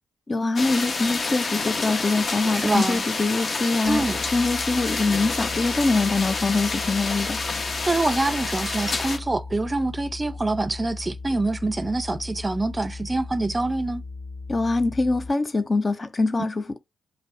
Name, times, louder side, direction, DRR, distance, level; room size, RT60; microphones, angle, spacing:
voice 1, 0.3-4.1 4.3-7.4 14.5-16.8, left 3 dB, 35° left, 0.4 m, -24 dB
sound 1, 0.6-9.2, left 3 dB, 50° left, 1.0 m, -28 dB
voice 2, 2.5-3.0 3.9-4.2 7.9-14.0, right 2 dB, 25° right, 0.4 m, -25 dB
sound 2, 3.8-15.3, left 3 dB, 70° left, 0.8 m, -37 dB
5.1 x 2.1 x 2.5 m
supercardioid pair, 55°, 0 cm